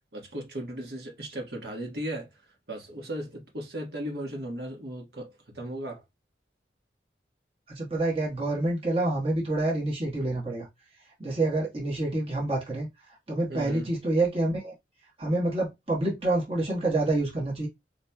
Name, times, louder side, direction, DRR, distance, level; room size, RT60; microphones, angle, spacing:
voice 1, 0.1-6.0 13.5-13.9, right 1 dB, 60° right, 1.3 m, -36 dB
voice 2, 7.7-10.7 11.2-12.9 13.3-14.7 15.2-17.7, right 2 dB, 30° right, 1.2 m, -27 dB
4.2 x 3.1 x 2.2 m
head